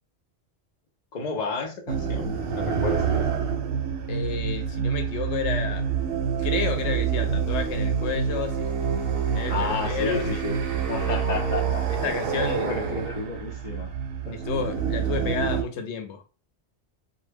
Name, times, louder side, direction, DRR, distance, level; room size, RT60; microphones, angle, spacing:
voice 1, 1.1-3.5 9.5-10.6 10.9-12.2 12.5-13.9 14.2-14.4, left 4 dB, 50° left, 0.5 m, -32 dB
sound 1, 1.9-15.6, right 7 dB, 65° right, 0.7 m, -27 dB
voice 2, 4.1-5.9 6.4-8.7 9.3-10.4 11.9-12.7 14.3-16.2, left 5 dB, 85° left, 0.9 m, -31 dB
2.2 x 2.1 x 3.2 m
omnidirectional pair, 1.1 m